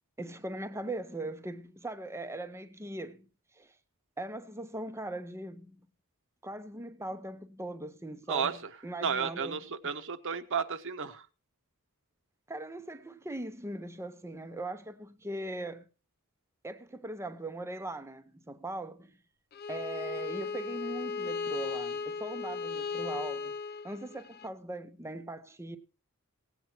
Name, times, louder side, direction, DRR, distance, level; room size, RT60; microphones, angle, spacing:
voice 1, 0.2-3.2 3.6-3.7 4.2-5.8 6.4-8.5 8.8-9.6 12.5-15.9 16.6-19.1 19.7-23.5 23.8-25.8, right 1 dB, 10° right, 0.8 m, -40 dB
voice 2, 8.3-8.7 9.0-11.3, right 6 dB, 60° right, 1.1 m, -32 dB
Bowed string instrument, 19.5-24.5, left 4 dB, 45° left, 0.5 m, -36 dB
18.0 x 8.2 x 4.4 m
head